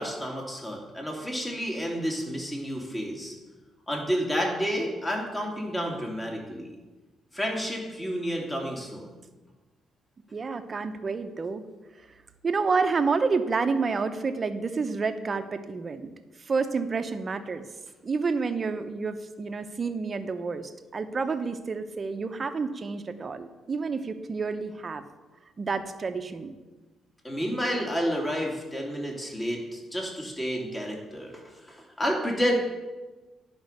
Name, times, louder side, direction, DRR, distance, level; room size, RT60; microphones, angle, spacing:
voice 1, 0.0-3.3 3.9-6.7 7.3-9.1 27.2-32.5, equal, 15° left, 0 dB, 2.5 m, -30 dB
voice 2, 10.3-11.6 12.4-16.1 16.5-17.7 18.0-25.0 25.6-26.5, right 4 dB, 35° right, 8 dB, 0.8 m, -29 dB
10.0 x 5.2 x 6.6 m, 1.2 s
cardioid pair, 90°, 0 cm